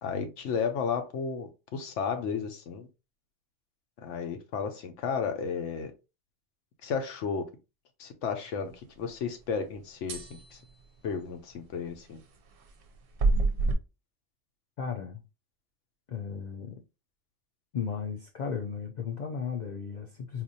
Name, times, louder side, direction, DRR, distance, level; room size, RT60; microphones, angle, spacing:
voice 1, 0.0-2.9 4.0-5.9 6.8-7.5 8.0-8.7 9.0-10.6 11.0-12.2, left 6 dB, 85° left, 1.0 m, -33 dB
sound 1, 10.1-10.4 13.2-13.7, right 3 dB, 60° right, 0.7 m, -25 dB
voice 2, 14.8-15.2 16.1-16.8 17.7-20.4, left 6 dB, 60° left, 0.4 m, -35 dB
4.2 x 2.4 x 2.7 m
omnidirectional pair, 1.2 m